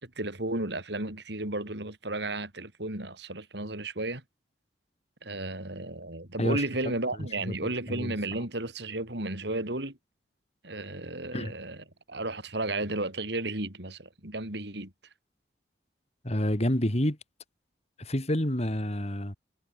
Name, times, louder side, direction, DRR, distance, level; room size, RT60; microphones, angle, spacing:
voice 1, 0.0-4.2 5.2-10.0 10.6-14.9, right 2 dB, 60° right, 4.1 m, -33 dB
voice 2, 16.2-17.2 18.0-19.4, left 1 dB, 35° left, 3.0 m, -28 dB
head